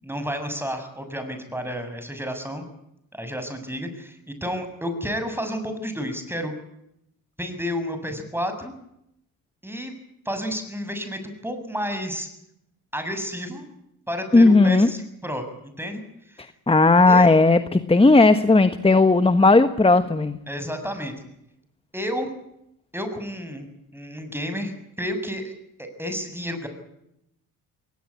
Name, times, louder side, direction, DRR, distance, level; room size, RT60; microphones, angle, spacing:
voice 1, 0.0-2.6 3.1-6.5 7.4-8.7 9.6-9.9 10.3-12.3 12.9-13.7 14.1-16.0 16.3-16.4 17.1-17.3 20.5-21.1 21.9-22.3 22.9-25.5 25.8-26.7, equal, 5° right, 8 dB, 7.2 m, -31 dB
voice 2, 14.3-14.9 16.7-20.4, left 3 dB, 15° left, 11 dB, 1.4 m, -15 dB
22.0 x 19.5 x 8.5 m, 0.78 s
supercardioid pair, 75°, 43 cm